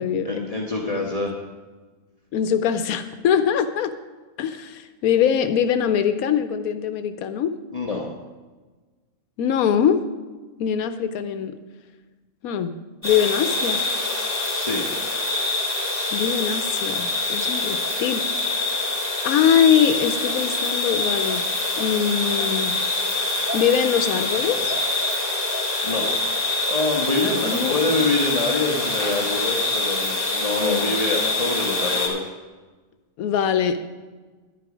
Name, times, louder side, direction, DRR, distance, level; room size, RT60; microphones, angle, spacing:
voice 1, 0.2-1.3 7.7-8.1 14.5-14.9 25.8-26.1 26.7-32.3, left 3 dB, 30° left, -1 dB, 1.1 m, -25 dB
voice 2, 2.3-3.9 4.4-7.5 9.4-10.0 10.6-11.6 12.4-12.7 13.0-13.8 16.1-18.2 18.7-19.0 19.2-21.4 21.8-22.8 23.5-24.8 27.4-27.8 30.6-30.9 33.2-33.9, left 8 dB, 85° left, 10 dB, 1.1 m, -22 dB
sound 1, 13.0-32.1, left 2 dB, 10° left, 3.2 m, -25 dB
11.0 x 10.5 x 5.0 m, 1.3 s
omnidirectional pair, 1.5 m